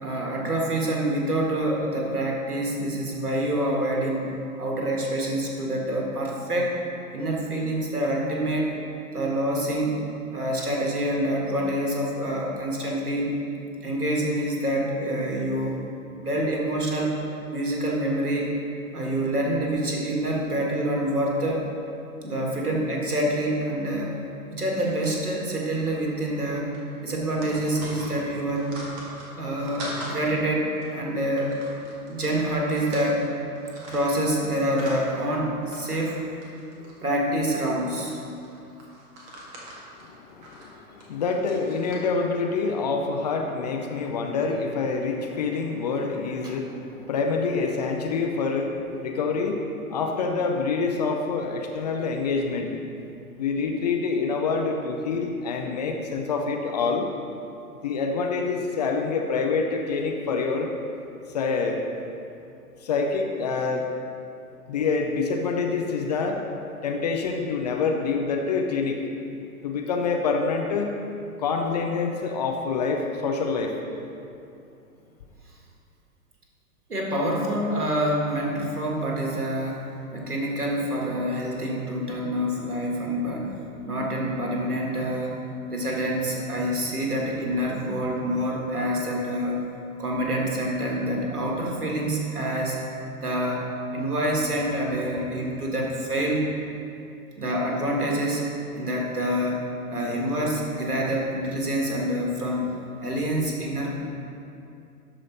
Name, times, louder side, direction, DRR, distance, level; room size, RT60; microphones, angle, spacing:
voice 1, 0.0-4.3 4.6-6.8 7.1-8.8 9.1-13.3 13.8-15.8 16.2-17.2 17.5-18.5 18.9-21.6 22.2-24.1 24.5-26.7 27.0-28.7 29.4-31.6 32.1-33.3 33.9-36.3 37.0-38.2 46.4-46.6 76.9-83.5 83.8-85.4 85.7-89.6 90.0-92.8 93.2-96.6 97.4-98.5 98.7-99.6 99.9-102.7 103.0-104.0, right 1 dB, 80° right, -2 dB, 1.9 m, -26 dB
sound 1, 24.8-25.6 25.9-26.0 26.3-26.5 26.7-30.2 30.8-30.9 31.4-33.3 33.5-35.3 35.6-36.2 36.4-37.5 38.1-41.9, right 1 dB, 30° right, 1.7 m, -42 dB
voice 2, 40.0-52.8 53.4-57.1 57.8-60.7 61.3-61.8 62.8-63.9 64.7-66.4 66.8-69.0 69.6-71.0 71.4-73.8, left 4 dB, 30° left, 2 dB, 0.5 m, -26 dB
12.5 x 5.0 x 4.2 m, 2.6 s
figure-of-eight pair, 115°, 45 cm